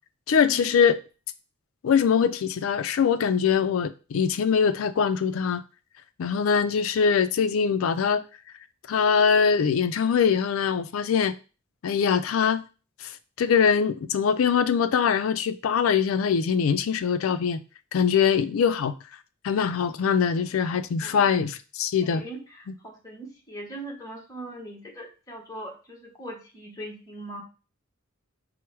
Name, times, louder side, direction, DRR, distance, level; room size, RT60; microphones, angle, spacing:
voice 1, 0.3-1.0 1.8-5.6 6.2-8.2 8.9-11.3 11.8-12.6 13.0-17.6 17.9-18.9 19.4-22.2, left 6 dB, 70° left, 0.4 m, -23 dB
voice 2, 22.0-27.4, right 1 dB, 15° left, 1.0 m, -40 dB
4.5 x 2.1 x 4.6 m
head